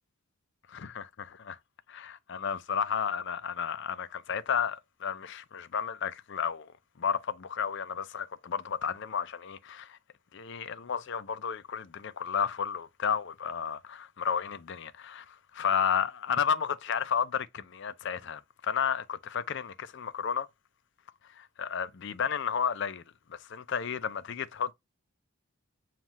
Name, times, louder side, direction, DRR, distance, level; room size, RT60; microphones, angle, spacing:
voice 1, 0.7-1.6 1.9-6.7 7.0-10.0 10.3-20.5 21.4-23.0 23.3-24.7, left 7 dB, 55° left, 0.5 m, -32 dB
7.2 x 2.4 x 2.9 m
head